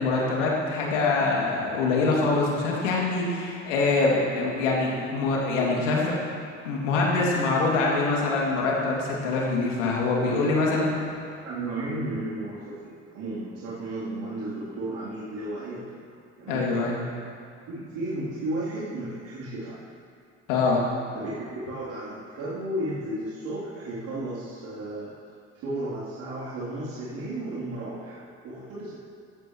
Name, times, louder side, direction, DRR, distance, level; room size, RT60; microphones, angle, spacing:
voice 1, 0.0-6.2 6.6-10.9 16.5-17.0 20.5-20.8, left 3 dB, 70° left, -3 dB, 2.8 m, -24 dB
voice 2, 10.4-10.8 11.1-16.0 16.4-16.7 17.1-17.2 17.7-19.8 21.1-25.1 25.6-28.2 28.4-29.0, right 1 dB, 55° right, -11 dB, 3.6 m, -34 dB
15.5 x 14.5 x 3.2 m, 2.3 s
figure-of-eight pair, 60°, 38 cm